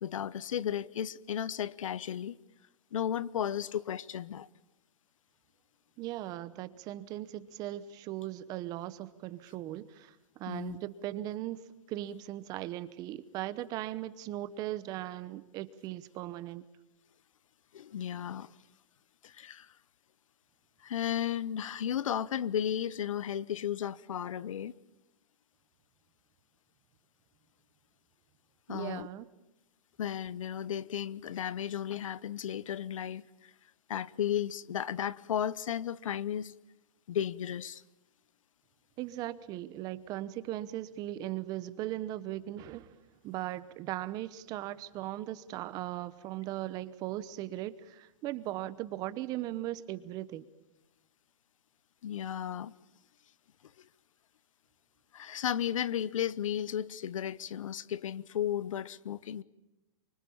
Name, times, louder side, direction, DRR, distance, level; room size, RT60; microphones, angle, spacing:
voice 1, 0.0-2.4 2.9-4.5 10.5-10.8 17.7-18.5 19.2-19.7 20.8-24.7 28.7-29.1 30.0-33.5 33.9-36.5 37.1-37.8 52.0-52.7 53.8-53.9 55.1-59.4, left 9 dB, 70° left, 0.9 m, -34 dB
voice 2, 6.0-11.6 11.9-16.6 28.7-29.3 39.0-42.9 43.2-50.5, right 14 dB, 20° right, 0.9 m, -38 dB
26.0 x 24.5 x 8.6 m
hypercardioid pair, 160°, 17 cm